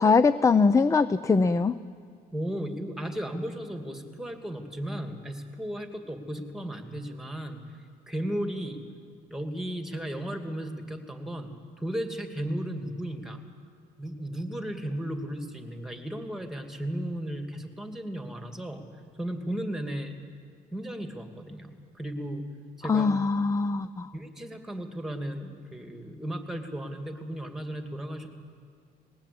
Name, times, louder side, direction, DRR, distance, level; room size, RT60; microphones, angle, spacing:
voice 1, 0.0-1.7 22.8-24.1, left 4 dB, 20° left, 14 dB, 0.5 m, -22 dB
voice 2, 2.3-7.6 8.1-8.8 9.3-13.4 14.0-18.8 19.2-20.1 20.7-22.4 22.8-23.1 24.1-28.3, right 1 dB, 5° right, 5 dB, 2.5 m, -35 dB
20.5 x 20.0 x 8.6 m, 2.1 s
cardioid pair, 110°, 17 cm